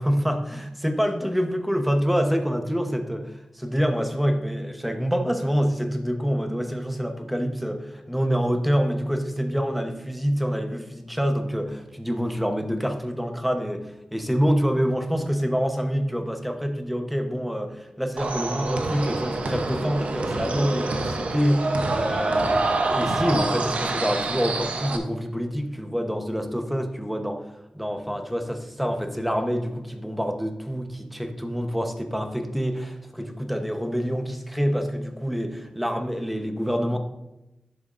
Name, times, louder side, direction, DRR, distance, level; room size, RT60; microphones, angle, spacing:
voice 1, 0.0-27.4 27.7-37.0, equal, ahead, 5 dB, 1.0 m, -26 dB
sound 1, 18.2-25.0, right 2 dB, 80° right, 0.9 m, -26 dB
11.0 x 7.0 x 2.6 m, 0.95 s
wide cardioid pair, 75°, 2 cm